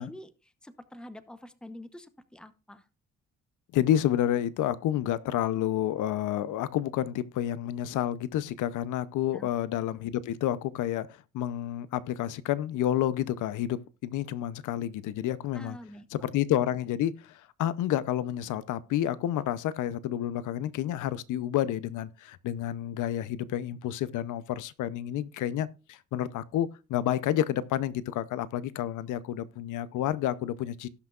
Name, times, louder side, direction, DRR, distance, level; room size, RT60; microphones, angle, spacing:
voice 1, 0.0-2.8 9.3-9.5 15.5-16.1, left 1 dB, 5° left, 0.8 m, -46 dB
voice 2, 3.7-15.8 16.1-30.9, left 11 dB, 80° left, 0.7 m, -30 dB
17.5 x 5.9 x 2.4 m
cardioid pair, 90°, 30 cm